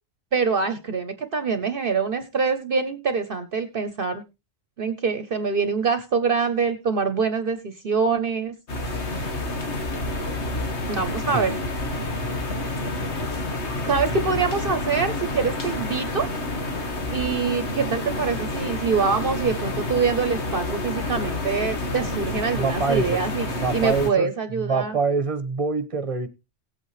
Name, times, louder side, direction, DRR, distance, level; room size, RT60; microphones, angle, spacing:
voice 1, 0.3-4.2 4.8-8.5 10.9-11.5 13.9-16.3 17.1-23.5 23.7-25.0, right 5 dB, 55° right, 1.1 m, -25 dB
sound 1, 8.7-24.1, left 2 dB, 80° left, 1.9 m, -29 dB
voice 2, 22.5-23.2 23.5-26.3, right 4 dB, 30° right, 1.2 m, -25 dB
17.0 x 8.4 x 3.1 m
omnidirectional pair, 1.1 m